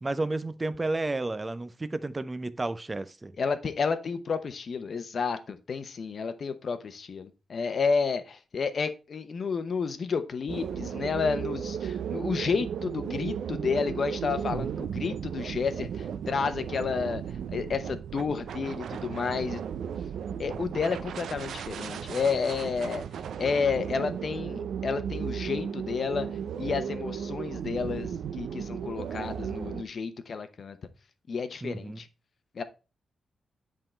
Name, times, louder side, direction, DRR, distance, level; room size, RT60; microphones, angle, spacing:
voice 1, 0.0-3.3 31.6-32.0, right 2 dB, 15° right, 0.5 m, -32 dB
voice 2, 3.4-19.6 20.4-26.3 26.6-30.8 31.3-32.1 32.5-32.6, left 5 dB, 45° left, 0.8 m, -31 dB
sound 1, 10.5-29.8, right 7 dB, 80° right, 0.5 m, -35 dB
10.0 x 3.8 x 4.3 m
wide cardioid pair, 160°, 0 cm